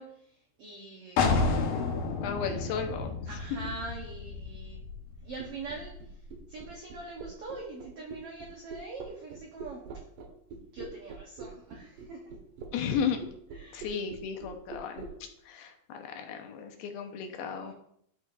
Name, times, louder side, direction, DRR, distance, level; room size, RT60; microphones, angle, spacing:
voice 1, 0.0-1.6 2.5-2.7 3.3-4.8 5.2-5.9 6.5-9.8 10.5-12.3 12.7-12.8 13.5-14.0 17.3-17.7, right 3 dB, 85° right, 0 dB, 1.3 m, -44 dB
sound 1, 1.2-6.7, left 4 dB, 70° left, 2.5 m, -31 dB
voice 2, 2.2-3.1 12.7-13.2 13.7-15.1 15.5-17.7, left 7 dB, 90° left, 4 dB, 2.8 m, -34 dB
sound 2, 5.4-15.1, right 4 dB, 70° right, 2.5 m, -43 dB
12.5 x 6.4 x 2.6 m, 0.70 s
omnidirectional pair, 4.3 m